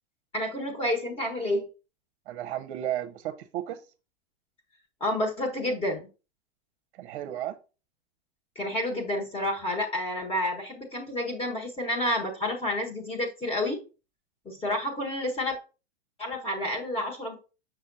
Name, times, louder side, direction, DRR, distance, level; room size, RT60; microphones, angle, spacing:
voice 1, 0.3-1.7 5.0-6.0 8.5-13.8 14.4-15.6 16.2-17.4, left 1 dB, 15° left, 1.4 m, -29 dB
voice 2, 2.3-3.8 7.0-7.5, right 12 dB, 55° right, 0.7 m, -33 dB
6.3 x 6.0 x 2.6 m
hypercardioid pair, 115°, 33 cm